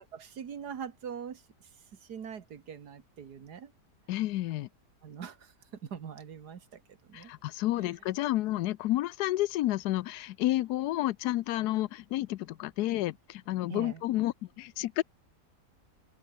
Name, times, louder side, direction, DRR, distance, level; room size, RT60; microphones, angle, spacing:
voice 1, 0.0-1.4 2.1-3.7 5.0-5.5 5.8-6.8 7.1-7.3 13.7-14.0, right 7 dB, 70° right, 2.1 m, -42 dB
voice 2, 4.1-4.7 7.1-15.0, left 15 dB, 75° left, 1.1 m, -30 dB
open air
omnidirectional pair, 1.8 m